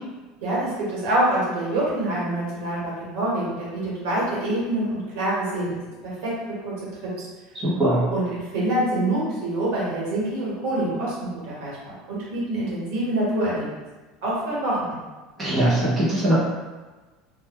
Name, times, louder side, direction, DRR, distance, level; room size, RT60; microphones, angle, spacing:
voice 1, 0.4-6.3 6.6-6.7 7.2-7.3 8.1-13.7 14.2-15.0, right 1 dB, 65° right, -6 dB, 1.1 m, -26 dB
voice 2, 7.5-8.0 15.4-16.3, right 1 dB, 15° right, -9 dB, 0.6 m, -21 dB
2.1 x 2.1 x 3.3 m, 1.2 s
cardioid pair, 170°, 0 cm